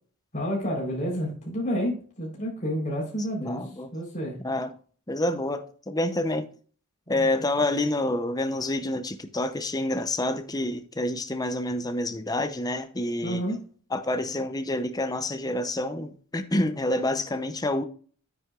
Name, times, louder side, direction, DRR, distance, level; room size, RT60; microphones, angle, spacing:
voice 1, 0.3-4.4 7.1-7.9 13.2-13.6, equal, 35° left, 4.0 m, -30 dB
voice 2, 3.4-3.9 4.4-4.8 5.1-6.5 7.1-13.4 13.9-17.8, left 1 dB, 15° left, 0.7 m, -28 dB
9.5 x 9.2 x 2.5 m
head